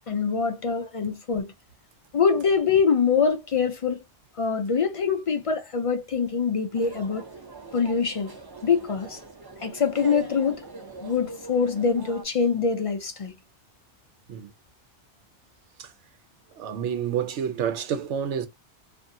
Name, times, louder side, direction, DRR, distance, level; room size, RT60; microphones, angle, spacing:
voice 1, 0.1-1.5 2.1-4.0 4.4-7.2 7.7-8.3 8.6-9.2 9.6-10.6 11.0-13.3, left 5 dB, 65° left, 0.3 m, -24 dB
sound 1, 6.7-12.2, right 3 dB, 25° right, 0.5 m, -41 dB
voice 2, 16.6-18.5, right 8 dB, 90° right, 1.0 m, -29 dB
2.5 x 2.5 x 2.6 m
omnidirectional pair, 1.2 m